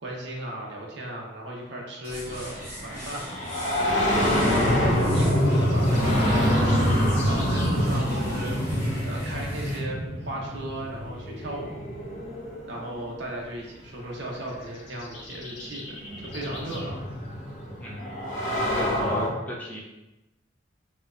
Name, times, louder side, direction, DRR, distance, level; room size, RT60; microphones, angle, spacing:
voice 1, 0.0-3.4 4.1-4.7 5.1-6.6 7.2-8.6 9.0-11.8 12.7-17.0, right 1 dB, 65° right, -1 dB, 0.7 m, -36 dB
sound 1, 2.0-9.8, equal, 10° right, 1.1 m, -40 dB
sound 2, 2.5-13.2 14.4-14.5 15.5-19.3, equal, 40° left, 0.7 m, -26 dB
voice 2, 4.3-4.6 17.8-18.2 18.7-19.8, equal, 10° left, -5 dB, 0.5 m, -36 dB
sound 3, 5.5-7.8 14.4-16.9, left 2 dB, 70° left, 0.9 m, -43 dB
4.3 x 2.2 x 2.4 m, 0.98 s
head